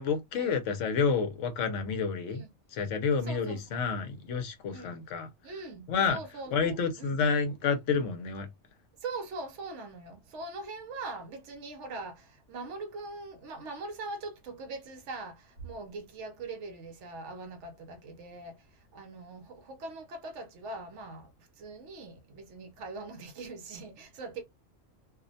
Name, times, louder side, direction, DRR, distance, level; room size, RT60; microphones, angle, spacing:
voice 1, 0.0-2.4 2.7-5.3 5.9-6.2 6.5-8.5, left 5 dB, 70° left, 0.9 m, -29 dB
voice 2, 3.2-3.8 4.7-5.0 5.4-7.2 9.0-21.3 21.6-24.4, right 3 dB, 70° right, 0.8 m, -42 dB
2.4 x 2.0 x 2.5 m
omnidirectional pair, 1.4 m